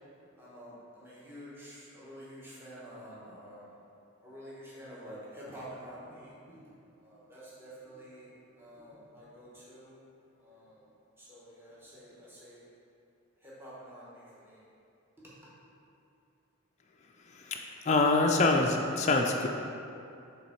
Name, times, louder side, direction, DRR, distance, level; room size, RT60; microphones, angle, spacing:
voice 1, 0.4-3.8 4.2-6.6 7.0-10.0 10.4-10.8 11.2-12.6 13.4-14.6 15.2-15.3, equal, 10° right, -9 dB, 1.1 m, -49 dB
voice 2, 17.3-19.5, left 3 dB, 35° left, 1 dB, 0.3 m, -26 dB
6.9 x 3.4 x 4.4 m, 2.6 s
head